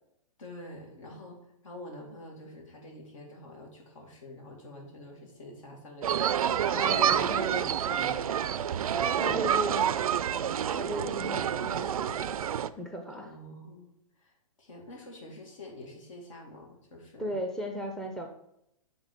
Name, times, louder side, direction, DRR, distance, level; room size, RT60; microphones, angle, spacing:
voice 1, 0.4-7.2 7.6-8.5 9.1-9.7 10.3-10.6 13.1-17.4, left 1 dB, 65° left, 1 dB, 2.3 m, -47 dB
sound 1, 6.0-12.7, right 9 dB, 80° right, 0.4 m, -28 dB
voice 2, 6.7-8.0 9.2-9.9 10.7-12.4 12.8-13.3 17.2-18.3, right 1 dB, 5° left, 2 dB, 0.6 m, -36 dB
7.2 x 3.8 x 5.0 m, 0.78 s
hypercardioid pair, 130°, 18 cm